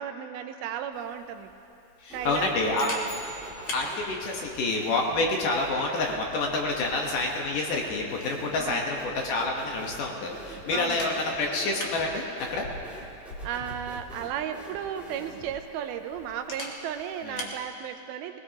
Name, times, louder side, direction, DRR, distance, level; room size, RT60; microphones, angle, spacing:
voice 1, 0.0-1.5 2.1-3.3 8.6-8.9 10.7-11.1 13.4-18.4, right 9 dB, 80° right, 7 dB, 2.5 m, -35 dB
Camera, 0.9-17.6, left 1 dB, 90° left, 0.9 m, -44 dB
voice 2, 2.0-2.9 3.7-12.2 12.5-12.6 17.3-17.5, left 3 dB, 65° left, 0 dB, 2.4 m, -28 dB
sound 1, 2.1-2.8 3.0-15.6, right 1 dB, ahead, 0.7 m, -46 dB
sound 2, 2.7-3.8, right 2 dB, 45° left, 4.8 m, -44 dB
20.5 x 18.5 x 2.8 m, 2.7 s
omnidirectional pair, 4.4 m